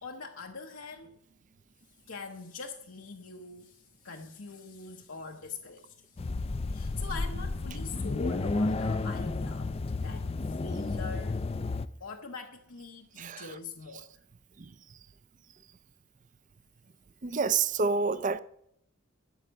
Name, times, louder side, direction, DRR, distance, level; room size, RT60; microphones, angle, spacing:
voice 1, 0.0-1.2 2.1-6.2 6.7-11.4 12.0-14.2, left 4 dB, 80° left, 1.0 m, -43 dB
sound 1, 6.2-11.9, left 3 dB, 30° left, 0.4 m, -32 dB
voice 2, 13.2-13.6 14.6-15.0 17.2-18.4, right 5 dB, 35° right, 0.5 m, -29 dB
13.0 x 7.9 x 6.4 m
head